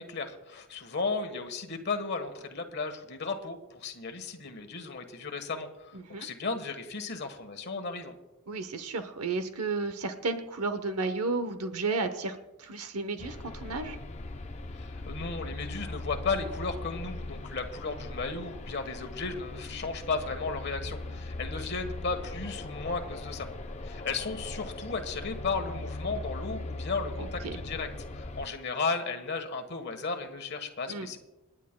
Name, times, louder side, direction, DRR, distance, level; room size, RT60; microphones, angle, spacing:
voice 1, 0.0-8.1 14.7-23.5 23.8-27.9 28.1-31.2, left 4 dB, 50° left, 6 dB, 1.3 m, -35 dB
voice 2, 5.9-6.3 8.5-14.0 27.2-27.6 30.9-31.1, right 3 dB, 85° right, 9 dB, 0.9 m, -33 dB
sound 1, 13.2-28.5, left 2 dB, 30° left, 0.6 m, -39 dB
28.5 x 10.0 x 2.2 m, 1.0 s
head